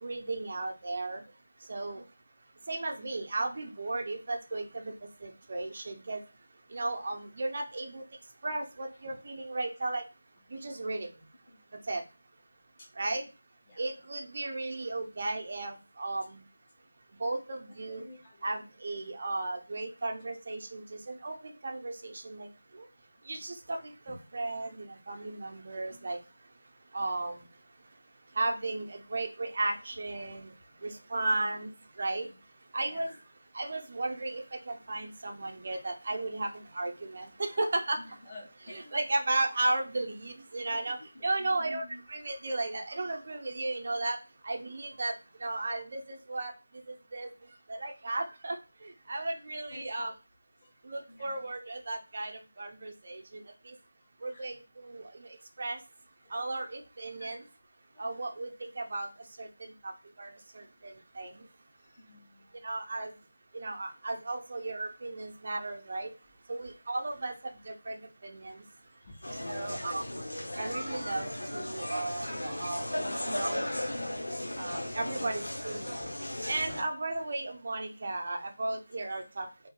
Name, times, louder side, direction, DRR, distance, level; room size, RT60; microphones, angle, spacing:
voice 1, 0.0-1.2 1.7-2.0 2.7-4.9 5.2-6.2 6.7-8.0 8.4-10.0 10.5-11.1 11.9-12.0 13.0-13.2 13.8-16.4 17.2-18.1 18.4-22.5 22.7-22.9 23.3-26.2 26.9-27.4 28.3-30.5 30.8-31.7 32.0-32.3 32.7-33.1 33.5-38.2 38.7-44.2 44.4-45.1 45.4-46.5 46.9-47.3 47.7-50.1 50.8-53.7 54.2-55.8 56.3-57.4 58.0-59.1 59.4-59.9 60.2-61.4 62.6-63.1 63.5-66.1 66.5-67.3 67.6-68.6 69.4-70.0 70.6-72.9 73.2-73.7 74.6-76.0 76.5-79.5, right 2 dB, 45° right, 3 dB, 0.6 m, -35 dB
voice 2, 13.7-14.0 17.9-18.4 24.1-24.2 25.9-26.1 30.8-31.0 32.1-32.3 32.9-33.2 38.0-39.0 40.7-42.0 49.7-50.1 50.6-50.8 51.1-51.4 54.3-54.5 56.2-56.3 57.2-57.3 57.9-58.3 60.6-60.7 61.8-62.6 69.0-69.8, left 1 dB, 20° left, -5 dB, 0.9 m, -51 dB
sound 1, 69.2-76.8, left 1 dB, 85° left, 0.6 m, -36 dB
2.7 x 2.6 x 2.2 m, 0.30 s
figure-of-eight pair, 165°, 0 cm